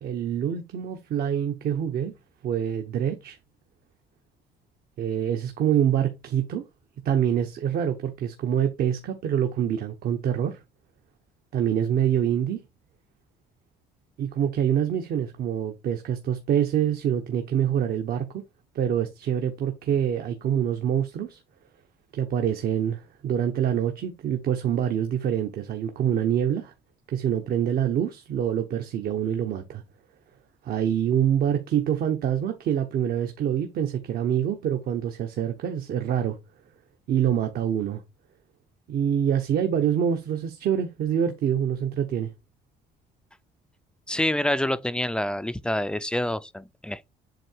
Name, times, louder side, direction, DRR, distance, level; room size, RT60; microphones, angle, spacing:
voice 1, 0.0-2.1 2.4-3.4 5.0-6.6 7.0-10.6 11.5-12.6 14.2-18.4 18.7-21.4 22.1-26.7 27.1-29.8 30.6-36.4 37.1-38.0 38.9-42.3, right 9 dB, 65° right, 1.0 m, -25 dB
voice 2, 44.1-47.1, left 1 dB, 5° left, 0.5 m, -27 dB
7.7 x 2.8 x 4.5 m
cardioid pair, 110°, 17 cm